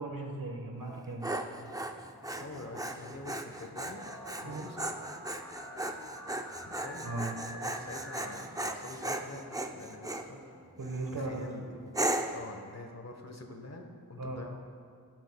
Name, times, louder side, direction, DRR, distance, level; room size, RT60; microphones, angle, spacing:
voice 1, 0.0-1.4 4.4-4.7 7.0-7.3 10.8-11.7 14.2-14.4, right 2 dB, 65° right, 1 dB, 1.3 m, -37 dB
Dog, 0.8-10.3 10.8-11.2 11.9-12.5, right 1 dB, 10° right, 0.5 m, -37 dB
sound 1, 1.8-12.5, equal, 35° right, 1.4 m, -57 dB
voice 2, 2.4-4.1 4.4-5.1 6.6-7.1 7.5-9.5 9.7-10.4 11.1-11.8 12.3-14.6, left 2 dB, 45° left, 3 dB, 1.1 m, -46 dB
sound 2, 3.7-8.9, left 1 dB, 5° left, 1.9 m, -48 dB
17.0 x 7.7 x 2.2 m, 2.2 s
wide cardioid pair, 60°, 36 cm